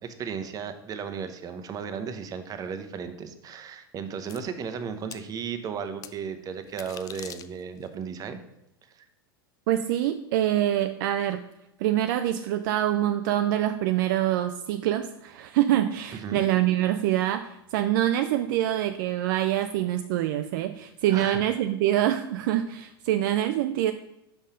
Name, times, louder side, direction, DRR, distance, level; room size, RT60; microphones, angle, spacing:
voice 1, 0.0-8.4 8.9-9.1 16.1-16.5 21.1-21.4, right 6 dB, 30° right, 8 dB, 0.8 m, -35 dB
sound 1, 4.3-4.4 5.1-5.3 6.0-6.1 6.7-7.9, left 9 dB, 30° left, 0.4 m, -42 dB
voice 2, 9.7-11.4 11.8-23.9, right 12 dB, 55° right, 8 dB, 0.4 m, -25 dB
5.5 x 5.2 x 5.0 m, 0.89 s
hypercardioid pair, 95°, 13 cm